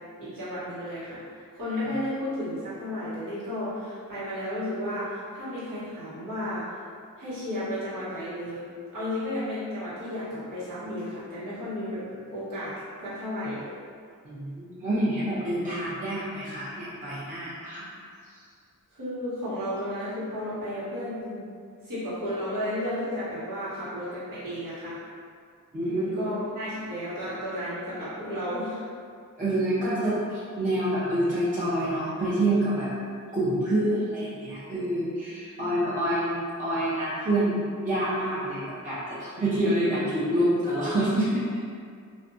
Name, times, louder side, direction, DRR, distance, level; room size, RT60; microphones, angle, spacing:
voice 1, 0.2-6.8 7.2-12.1 12.3-13.7 18.9-21.4 21.8-25.0 25.9-28.8 33.8-33.9 35.5-35.9, left 1 dB, 80° right, -11 dB, 1.2 m, -33 dB
voice 2, 14.2-17.9 25.7-26.1 29.4-32.9 33.3-41.4, right 1 dB, 25° right, -12 dB, 0.7 m, -27 dB
2.4 x 2.2 x 2.6 m, 2.2 s
cardioid pair, 65°, 33 cm